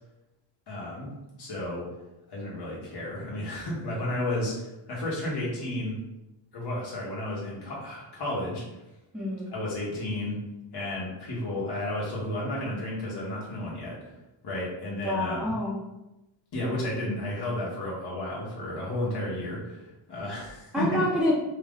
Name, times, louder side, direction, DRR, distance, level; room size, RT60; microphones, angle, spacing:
voice 1, 0.7-1.1 1.4-1.9 2.3-6.0 6.5-8.6 9.5-10.4 10.7-14.0 14.4-15.4 16.5-21.0, left 1 dB, 55° left, -5 dB, 1.4 m, -32 dB
voice 2, 9.1-9.5 15.0-15.8 20.7-21.3, left 1 dB, ahead, -7 dB, 1.3 m, -27 dB
3.8 x 2.6 x 3.7 m, 0.98 s
wide cardioid pair, 125°, 47 cm